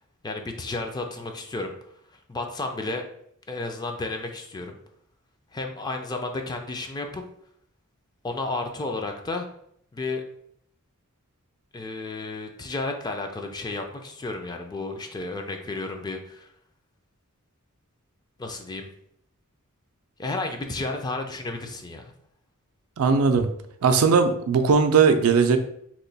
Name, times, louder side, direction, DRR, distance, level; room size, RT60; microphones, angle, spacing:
voice 1, 0.2-1.7 2.3-3.0 3.5-4.8 5.5-7.2 8.2-9.5 9.9-10.2 11.7-16.5 18.4-18.9 20.2-22.1, left 2 dB, 20° left, 4 dB, 0.3 m, -32 dB
voice 2, 23.0-23.5 23.8-25.6, right 5 dB, 70° right, 8 dB, 0.4 m, -19 dB
3.0 x 2.1 x 3.9 m, 0.70 s
head